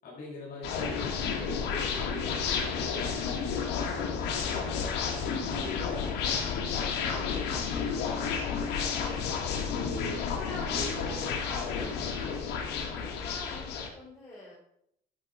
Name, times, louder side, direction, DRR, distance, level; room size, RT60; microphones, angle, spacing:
voice 1, 0.0-3.2 3.6-6.4 6.8-7.5 9.7-10.3 10.7-11.4 11.7-12.0, left 2 dB, 60° left, -4 dB, 5.4 m, -42 dB
sound 1, 0.6-13.9, left 6 dB, 80° left, 1.9 m, -31 dB
voice 2, 10.1-12.3 12.9-14.5, left 2 dB, 15° left, -7 dB, 4.2 m, -46 dB
13.0 x 7.6 x 4.3 m, 0.74 s
cardioid pair, 110°, 17 cm